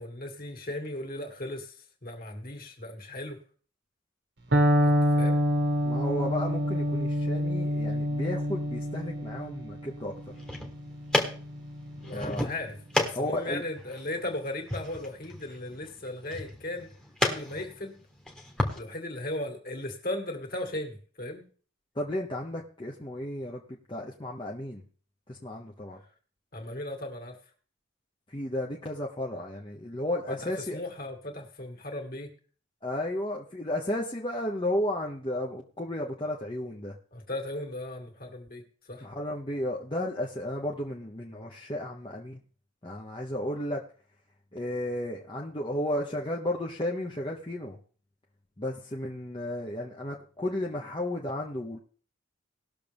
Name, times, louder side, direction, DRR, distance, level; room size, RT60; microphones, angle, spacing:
voice 1, 0.0-1.8 2.0-3.4 4.8-5.4 12.0-16.9 17.2-18.0 18.7-21.5 26.5-27.4 30.3-32.3 37.1-38.6 38.9-39.1, left 1 dB, 45° left, 2 dB, 2.2 m, -37 dB
Electric guitar, 4.5-12.4, equal, 60° right, 1.5 m, -27 dB
voice 2, 5.8-10.3 12.1-12.5 13.1-13.6 21.9-24.8 25.3-26.0 28.3-30.8 32.8-36.9 39.0-42.4 42.8-43.8 44.5-47.8 48.6-51.8, left 1 dB, 25° left, -1 dB, 0.9 m, -33 dB
sound 1, 10.2-18.8, left 1 dB, 5° left, 1.3 m, -33 dB
19.0 x 6.7 x 3.5 m, 0.42 s
head